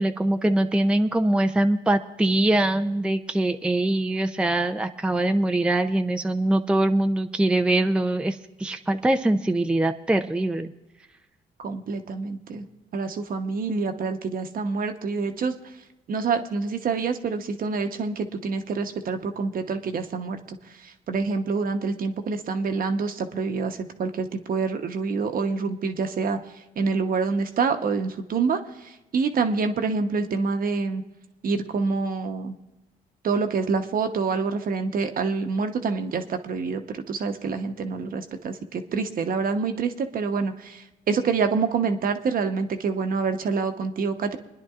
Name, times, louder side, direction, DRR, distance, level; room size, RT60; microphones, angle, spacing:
voice 1, 0.0-10.7, right 1 dB, 5° right, 6 dB, 0.5 m, -23 dB
voice 2, 11.6-12.7 12.9-15.6 16.1-26.4 26.8-31.0 31.4-32.5 33.2-44.4, right 4 dB, 55° right, 7 dB, 1.0 m, -27 dB
29.5 x 10.0 x 2.5 m, 1.0 s
supercardioid pair, 75°, 18 cm